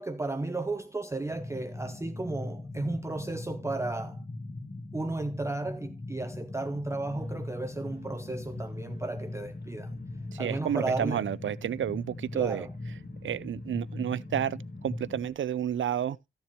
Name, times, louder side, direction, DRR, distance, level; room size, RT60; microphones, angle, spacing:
voice 1, 0.0-4.2 4.9-10.0 10.4-11.2 12.3-12.7, right 2 dB, 15° right, 0.5 m, -34 dB
sound 1, 1.3-15.3, left 2 dB, 35° left, 1.3 m, -40 dB
sound 2, 7.1-15.4, left 2 dB, 50° left, 2.0 m, -55 dB
voice 2, 10.3-12.7 13.2-16.2, right 10 dB, 70° right, 0.4 m, -31 dB
14.0 x 7.2 x 3.0 m
wide cardioid pair, 130°, 21 cm